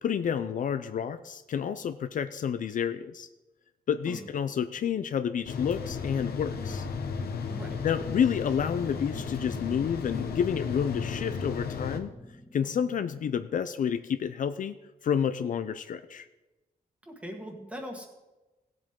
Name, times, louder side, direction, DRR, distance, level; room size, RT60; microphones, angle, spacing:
voice 1, 0.0-3.3 3.9-6.8 7.8-12.1 12.5-14.8 15.0-16.3, left 8 dB, 55° left, 10 dB, 0.5 m, -29 dB
sound 1, 5.5-12.0, left 5 dB, 85° left, 1.1 m, -34 dB
sound 2, 5.7-13.4, equal, 40° right, 2.4 m, -53 dB
voice 2, 7.5-7.8 17.0-18.1, equal, 10° right, 2 dB, 1.7 m, -40 dB
17.5 x 7.8 x 3.7 m, 1.1 s
wide cardioid pair, 160°, 16 cm